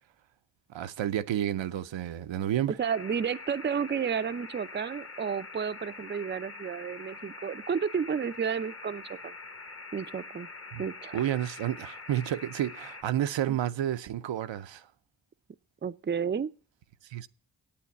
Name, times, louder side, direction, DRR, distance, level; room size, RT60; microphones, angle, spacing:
voice 1, 0.7-2.7 10.7-10.8 11.1-14.9 17.1-17.3, right 11 dB, 75° right, 0.7 m, -30 dB
sound 1, 2.8-13.0, left 3 dB, 30° left, 1.2 m, -45 dB
voice 2, 2.8-9.3 9.9-10.5 10.8-11.2 13.5-13.6 15.8-16.5, right 7 dB, 25° right, 0.5 m, -31 dB
8.6 x 8.5 x 8.3 m
cardioid pair, 45°, 45 cm